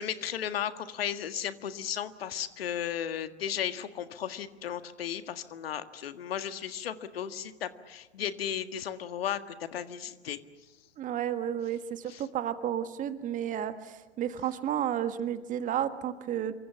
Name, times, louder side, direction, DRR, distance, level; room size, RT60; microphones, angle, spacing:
voice 1, 0.0-10.4 12.1-12.2, left 9 dB, 60° left, 10 dB, 1.8 m, -35 dB
voice 2, 11.0-16.5, right 10 dB, 25° right, 10 dB, 1.6 m, -32 dB
27.5 x 24.5 x 7.2 m, 1.2 s
figure-of-eight pair, 110°, 33 cm